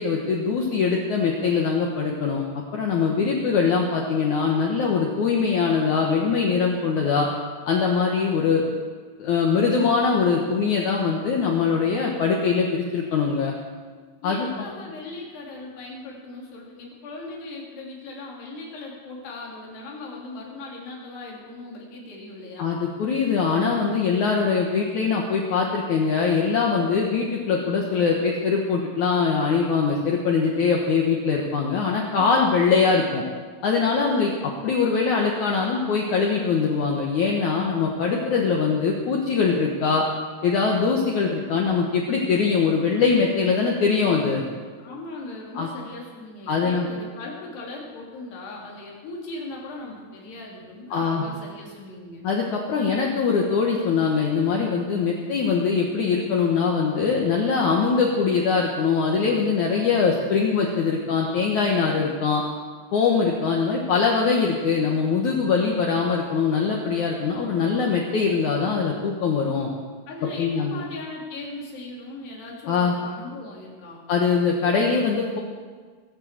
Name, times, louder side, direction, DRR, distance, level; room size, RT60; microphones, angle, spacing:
voice 1, 0.0-7.3 7.7-8.6 9.2-13.5 14.2-14.5 22.6-33.2 33.6-34.3 34.6-40.0 40.4-44.4 45.6-45.7 46.5-46.9 50.9-51.2 52.2-62.4 62.9-69.7 70.4-70.7 72.7-72.9 74.1-75.4, left 5 dB, 60° left, -1 dB, 2.3 m, -22 dB
voice 2, 14.2-22.7 32.2-32.4 34.1-34.2 44.8-52.3 70.1-74.0, left 2 dB, 85° left, -2 dB, 5.1 m, -38 dB
23.0 x 7.9 x 7.4 m, 1.6 s
omnidirectional pair, 4.6 m